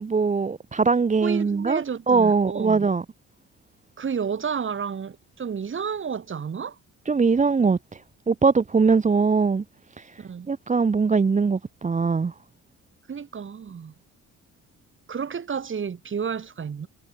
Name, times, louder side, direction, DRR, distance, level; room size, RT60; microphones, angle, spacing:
voice 1, 0.0-3.0 7.1-8.0 8.3-9.6 10.0-12.3, right 4 dB, 25° right, 1.0 m, -22 dB
voice 2, 1.2-2.9 4.0-6.8 10.2-10.5 13.1-13.9 15.1-16.9, right 6 dB, 40° right, 2.9 m, -31 dB
cardioid pair, 90°, 30 cm